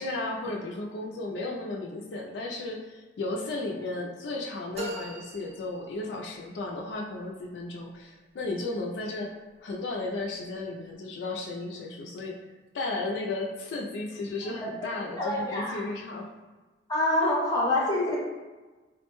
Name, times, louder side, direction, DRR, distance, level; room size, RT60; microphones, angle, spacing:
voice 1, 0.0-9.3 9.6-12.4 12.7-16.3 17.2-17.3, left 2 dB, 70° left, -1 dB, 0.4 m, -34 dB
sound 1, 4.7-6.4, right 1 dB, 35° right, 0.6 m, -40 dB
voice 2, 15.2-15.8 16.9-18.2, left 1 dB, 20° left, -5 dB, 0.6 m, -26 dB
3.8 x 2.1 x 2.9 m, 1.2 s
head